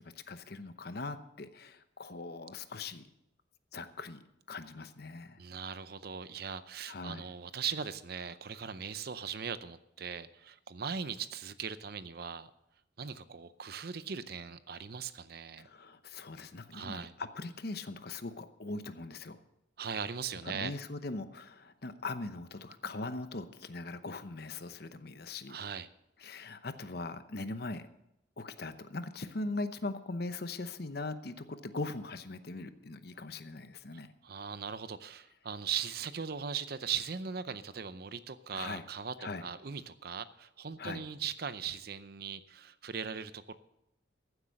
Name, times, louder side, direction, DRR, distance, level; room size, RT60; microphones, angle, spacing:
voice 1, 0.0-3.1 3.7-4.2 4.5-5.4 6.9-7.3 15.6-19.4 20.4-25.6 26.2-27.9 28.4-34.1 38.5-38.8 39.2-39.4 40.8-41.0, left 3 dB, 55° left, 11 dB, 0.8 m, -40 dB
voice 2, 5.4-12.5 13.0-15.7 16.7-17.1 19.8-20.7 25.5-25.9 34.2-43.5, right 7 dB, 55° right, 14 dB, 0.6 m, -39 dB
15.0 x 8.1 x 6.3 m, 0.84 s
head